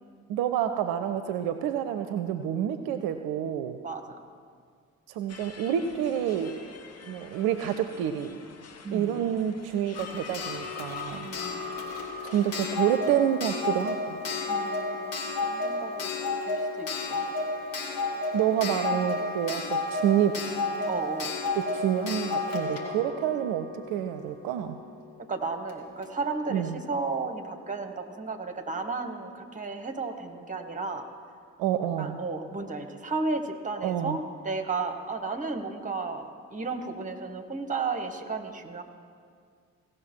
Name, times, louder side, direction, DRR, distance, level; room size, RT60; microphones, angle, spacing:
voice 1, 0.3-3.8 5.1-6.6 7.0-8.4 8.9-11.3 12.2-14.2 18.3-20.4 21.6-24.8 26.5-26.8 31.6-32.2 33.8-34.2, right 10 dB, 65° right, 9 dB, 0.6 m, -28 dB
sound 1, 5.3-13.0, left 5 dB, 40° left, 1.1 m, -48 dB
voice 2, 8.8-9.2 11.2-11.8 14.4-17.3 20.9-21.4 22.5-23.0 25.3-31.1 32.0-34.2 34.4-38.8, right 4 dB, 20° right, 6 dB, 1.4 m, -34 dB
Clock, 9.9-24.5 25.7-25.8 26.0-26.1, left 3 dB, 60° left, 1.8 m, -32 dB
17.0 x 6.3 x 4.5 m, 2.1 s
figure-of-eight pair, 40°, 40 cm